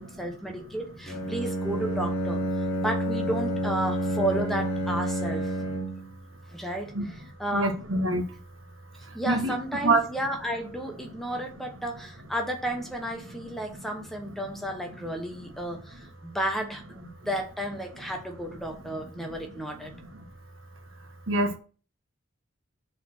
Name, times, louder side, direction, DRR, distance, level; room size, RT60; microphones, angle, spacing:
voice 1, 0.0-2.4 2.8-5.5 6.5-6.9 7.4-7.8 9.1-19.9, right 1 dB, ahead, 2 dB, 1.0 m, -32 dB
Bowed string instrument, 1.0-6.1, right 1 dB, 30° left, 3.9 m, -29 dB
voice 2, 7.5-8.2 9.3-9.6 9.8-10.0 21.3-21.6, right 2 dB, 75° right, 6 dB, 1.3 m, -24 dB
6.8 x 4.1 x 6.0 m, 0.38 s
head